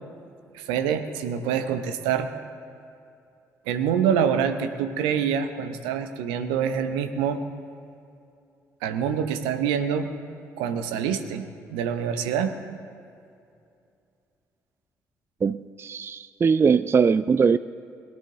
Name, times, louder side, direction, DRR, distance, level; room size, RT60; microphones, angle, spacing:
voice 1, 0.5-2.3 3.7-7.4 8.8-10.1 10.6-11.4 11.7-12.6, right 8 dB, 70° right, 9 dB, 0.8 m, -26 dB
voice 2, 15.4-17.6, right 6 dB, 30° right, 15 dB, 0.3 m, -21 dB
21.5 x 10.5 x 3.8 m, 2.5 s
figure-of-eight pair, 40°, 9 cm